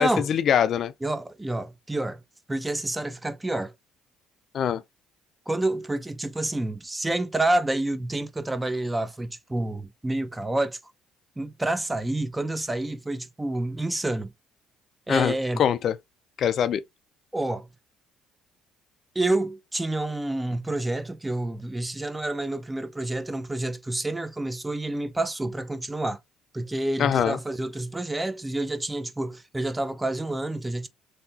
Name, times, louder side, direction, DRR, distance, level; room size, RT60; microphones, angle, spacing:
voice 1, 0.0-0.9 4.5-4.8 15.1-15.3 15.6-16.0 16.4-16.8 27.0-27.4, left 9 dB, 60° left, 0.3 m, -23 dB
voice 2, 1.0-2.2 2.5-3.7 5.5-10.8 11.4-14.3 15.1-15.6 17.3-17.7 19.1-26.2 26.5-30.9, right 2 dB, 15° right, 0.6 m, -28 dB
3.3 x 2.8 x 2.7 m
supercardioid pair, 85°, 0 cm